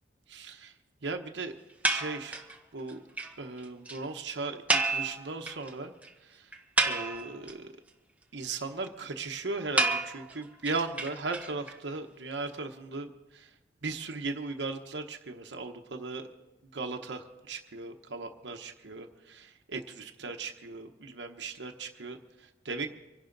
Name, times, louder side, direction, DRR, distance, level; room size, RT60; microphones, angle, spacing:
voice 1, 0.3-0.7 1.0-1.5 1.8-2.4 2.7-3.0 3.4-5.9 6.2-6.5 6.8-7.7 8.3-13.5 13.8-16.3 16.7-22.9, right 3 dB, 90° right, 4 dB, 1.0 m, -37 dB
sound 1, 1.8-2.6 2.9-3.0 3.2-3.3 3.6-3.7 3.9-4.0 4.7-5.7 6.0-6.1 6.5-7.5 9.8-11.7, right 3 dB, 10° right, 1.1 m, -29 dB
25.5 x 11.0 x 3.9 m, 1.1 s
head